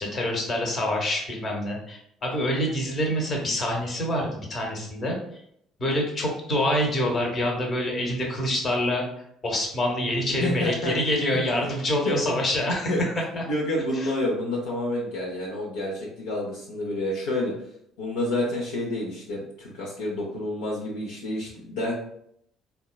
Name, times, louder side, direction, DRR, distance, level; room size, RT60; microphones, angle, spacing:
voice 1, 0.0-5.2 5.8-9.0 9.4-13.0 13.4-13.5 14.0-14.1, left 1 dB, 40° left, 0 dB, 1.0 m, -26 dB
voice 2, 10.3-10.9 11.3-11.4 12.1-12.4 12.9-13.0 13.3-17.5 18.0-21.9, left 1 dB, 75° left, -4 dB, 0.6 m, -29 dB
3.7 x 2.2 x 2.3 m, 0.71 s
hypercardioid pair, 55°, 0 cm